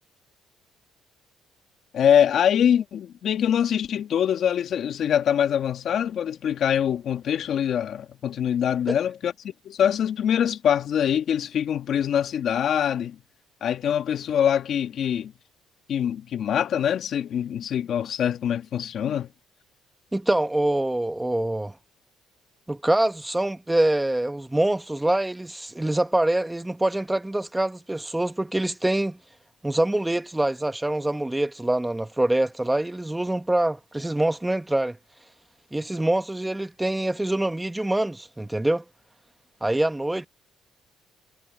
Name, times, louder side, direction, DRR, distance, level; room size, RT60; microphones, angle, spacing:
voice 1, 1.9-9.3 9.6-13.2 13.6-15.3 15.9-19.3, left 9 dB, 55° left, 1.8 m, -24 dB
voice 2, 20.1-21.7 22.7-29.2 29.6-35.0 35.7-38.8 39.6-40.3, right 1 dB, 10° right, 1.4 m, -25 dB
cardioid pair, 105°, 0 cm